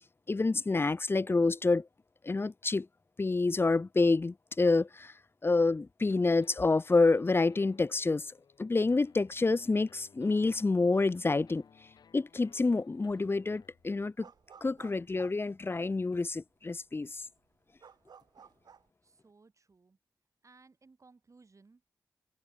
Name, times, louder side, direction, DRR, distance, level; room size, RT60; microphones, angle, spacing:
voice 1, 0.3-1.9 2.2-2.9 3.2-5.1 5.4-8.3 8.6-11.6 12.1-14.3 14.6-17.2, left 3 dB, 35° left, 0.7 m, -28 dB
sound 1, 6.1-14.0, left 7 dB, 75° left, 3.5 m, -61 dB
sound 2, 12.3-12.7 13.0-16.2 16.7-16.8 17.0-18.9, right 6 dB, 75° right, 2.5 m, -57 dB
voice 2, 19.0-20.0 20.4-21.9, right 4 dB, 45° right, 7.5 m, -61 dB
cardioid pair, 50°, 7 cm